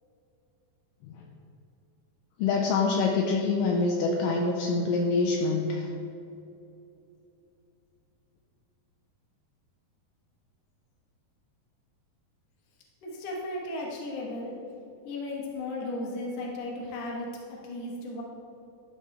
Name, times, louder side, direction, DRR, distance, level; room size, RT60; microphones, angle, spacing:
voice 1, 2.4-5.9, left 4 dB, 80° left, 0 dB, 2.1 m, -25 dB
voice 2, 13.0-14.6 15.0-18.2, left 2 dB, 55° left, -2 dB, 1.8 m, -35 dB
12.0 x 6.2 x 3.3 m, 2.8 s
omnidirectional pair, 4.3 m